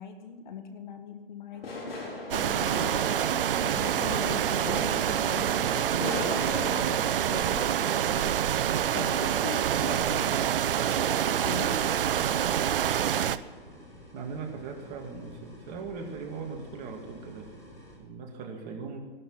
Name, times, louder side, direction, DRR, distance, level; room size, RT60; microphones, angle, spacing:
voice 1, 0.0-1.9 2.3-3.0 3.6-6.7 7.3-8.3 8.9-11.8, left 6 dB, 55° left, 7 dB, 2.0 m, -40 dB
sound 1, 1.5-13.4, left 2 dB, 80° left, 5.4 m, -41 dB
sound 2, 2.3-13.4, right 10 dB, 65° right, 0.7 m, -26 dB
sound 3, 10.6-17.9, left 1 dB, 10° left, 4.9 m, -50 dB
voice 2, 14.1-19.0, right 5 dB, 30° right, 2 dB, 2.5 m, -39 dB
17.5 x 12.0 x 5.9 m, 1.5 s
hypercardioid pair, 145°, 29 cm